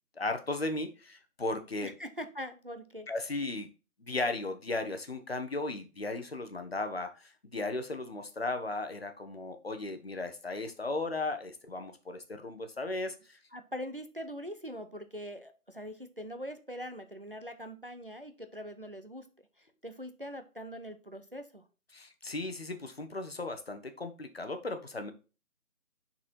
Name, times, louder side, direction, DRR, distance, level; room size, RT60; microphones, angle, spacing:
voice 1, 0.2-1.9 3.1-3.7 4.0-13.4 21.9-25.1, left 2 dB, 45° left, 8 dB, 0.9 m, -36 dB
voice 2, 1.8-3.1 13.5-19.3 19.6-21.6, equal, 40° right, 8 dB, 0.5 m, -42 dB
6.4 x 4.2 x 4.4 m, 0.34 s
figure-of-eight pair, 160°, 43 cm